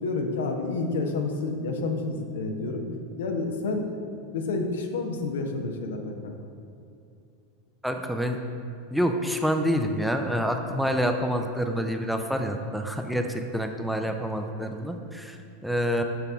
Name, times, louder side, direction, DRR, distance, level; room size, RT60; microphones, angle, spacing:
voice 1, 0.0-2.8 3.2-4.0 4.3-6.3 13.5-13.6, left 3 dB, 80° left, 3 dB, 0.7 m, -29 dB
voice 2, 7.8-8.4 8.9-16.0, equal, ahead, 5 dB, 0.4 m, -27 dB
5.9 x 5.5 x 3.6 m, 2.6 s
hypercardioid pair, 100°, 0 cm